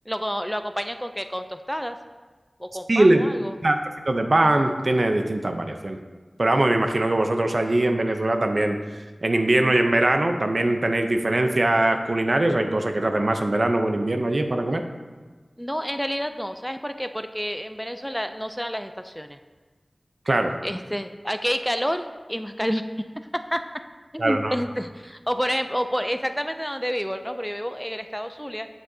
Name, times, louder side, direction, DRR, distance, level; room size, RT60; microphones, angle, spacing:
voice 1, 0.1-2.0 2.6-3.5 15.6-19.4 20.6-22.8 23.3-23.6 24.1-28.7, equal, ahead, 8 dB, 0.3 m, -29 dB
voice 2, 2.9-3.3 3.6-3.8 4.1-6.0 6.4-8.8 9.2-14.8 20.3-20.5 24.2-24.6, right 1 dB, 60° right, 5 dB, 0.6 m, -21 dB
8.7 x 7.5 x 2.7 m, 1.4 s
wide cardioid pair, 60°, 0 cm